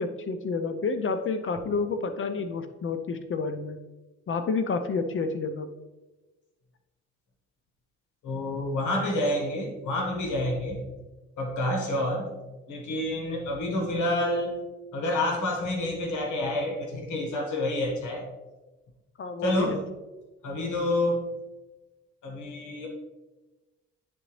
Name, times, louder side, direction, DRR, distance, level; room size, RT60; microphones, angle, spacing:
voice 1, 0.0-3.8 4.3-5.7 19.2-19.8, left 4 dB, 45° left, 8 dB, 0.5 m, -29 dB
voice 2, 8.2-10.8 11.4-12.3 12.7-14.6 14.9-18.3 19.4-19.8 20.4-21.3 22.2-22.9, left 1 dB, 75° left, 0 dB, 1.3 m, -28 dB
9.3 x 3.8 x 3.1 m, 1.1 s
cardioid pair, 90°, 30 cm